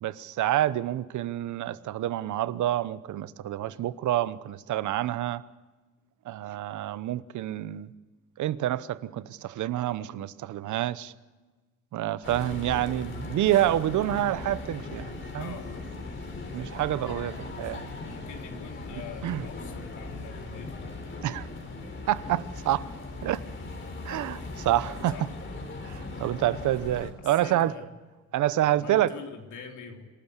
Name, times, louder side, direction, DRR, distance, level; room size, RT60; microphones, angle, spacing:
voice 1, 0.0-5.4 6.3-7.9 8.4-11.1 11.9-15.5 16.5-17.9 19.2-19.5 21.2-21.5 22.1-22.8 23.2-23.4 24.0-25.1 25.8-27.7 28.3-29.1, right 13 dB, 75° right, 0.9 m, -28 dB
sound 1, 12.2-27.1, left 3 dB, 40° left, 3.8 m, -39 dB
voice 2, 15.3-15.8 18.0-20.9 25.1-25.3 27.4-27.9 28.6-30.1, left 6 dB, 75° left, 3.6 m, -44 dB
26.5 x 13.0 x 8.2 m
cardioid pair, 90°, 30 cm